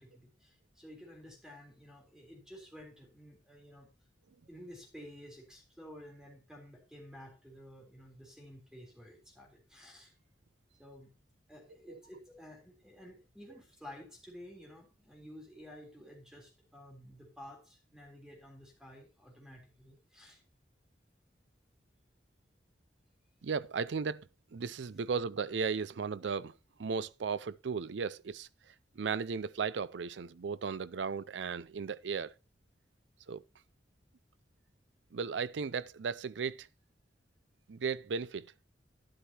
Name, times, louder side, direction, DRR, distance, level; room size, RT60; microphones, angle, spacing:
voice 1, 0.0-3.9 4.5-10.1 10.8-11.1 11.5-20.4, equal, 5° right, 3.7 m, -52 dB
voice 2, 23.4-32.3 33.3-33.4 35.1-36.7 37.7-38.5, right 5 dB, 80° right, 0.5 m, -36 dB
11.5 x 11.0 x 2.9 m
head